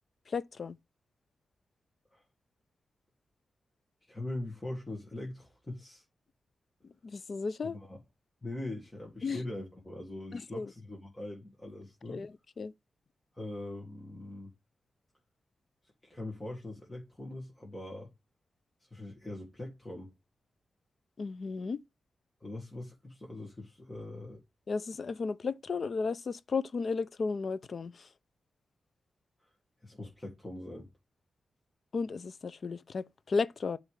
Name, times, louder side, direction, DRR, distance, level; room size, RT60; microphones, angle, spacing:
voice 1, 0.3-0.8 7.0-7.8 9.2-9.4 10.3-10.7 12.1-12.7 21.2-21.8 24.7-28.1 31.9-33.8, left 4 dB, 55° left, 0.5 m, -34 dB
voice 2, 4.0-6.0 7.6-8.0 8.4-12.2 13.3-14.5 16.0-18.1 18.8-20.1 22.4-24.4 29.8-30.9, left 1 dB, 15° left, 1.8 m, -42 dB
8.2 x 3.3 x 4.8 m
cardioid pair, 90°, 0 cm